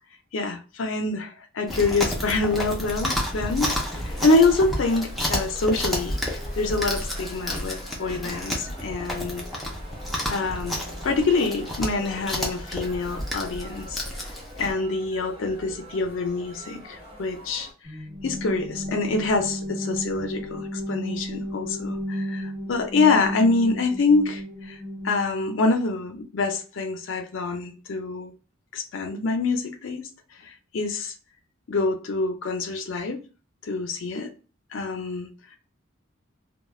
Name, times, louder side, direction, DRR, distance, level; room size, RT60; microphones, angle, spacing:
voice 1, 0.3-3.7 4.0-9.4 10.3-14.0 14.6-17.7 18.2-24.8 25.0-28.3 28.7-30.0 30.7-31.1 31.7-33.2 33.6-34.3 34.7-35.3, left 3 dB, 65° left, 0.5 m, -25 dB
Chewing mastication, 1.7-14.7, left 1 dB, ahead, 0.4 m, -31 dB
sound 1, 3.5-17.7, equal, 25° right, 0.9 m, -44 dB
sound 2, 17.8-25.6, equal, 55° right, 1.2 m, -33 dB
2.3 x 2.1 x 3.1 m
head